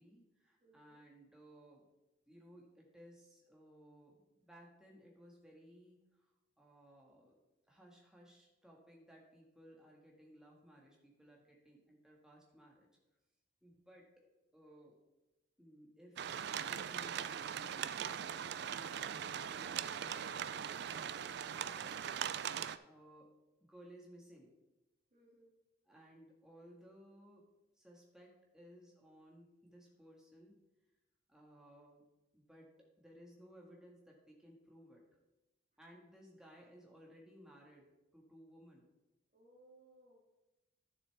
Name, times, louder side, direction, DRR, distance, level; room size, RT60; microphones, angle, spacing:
voice 1, 0.0-1.9 2.3-6.3 6.6-7.4 7.7-12.9 13.6-14.1 14.5-15.0 15.6-16.3 16.6-21.9 22.8-23.3 23.7-24.5 25.9-27.5 27.8-30.6 31.3-32.0 32.3-35.0 35.8-38.8, equal, 5° right, -2 dB, 1.5 m, -60 dB
voice 2, 0.6-1.0 25.1-25.5 39.3-40.2, right 1 dB, 40° right, -6 dB, 2.0 m, -64 dB
sound 1, 16.2-22.8, right 8 dB, 55° right, 0.3 m, -40 dB
11.5 x 7.0 x 3.4 m, 1.0 s
head